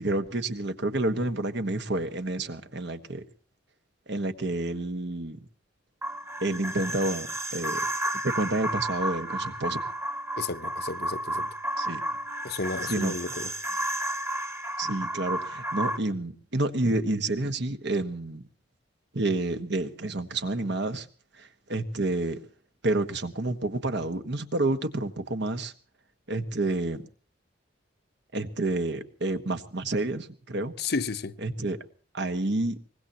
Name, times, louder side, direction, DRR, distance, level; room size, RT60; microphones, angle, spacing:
voice 1, 0.0-3.2 4.1-5.4 6.4-7.8 8.2-9.8 11.8-12.0 12.8-13.3 14.8-18.4 19.1-21.1 21.4-22.4 22.8-25.7 26.3-27.0 28.3-30.7 31.4-31.8 32.1-32.8, right 2 dB, 65° right, 1.5 m, -29 dB
sound 1, 6.0-16.0, right 1 dB, 15° right, 1.3 m, -32 dB
voice 2, 10.4-11.5 12.4-13.5 30.8-31.3, left 4 dB, 60° left, 0.9 m, -32 dB
24.0 x 20.0 x 2.9 m
head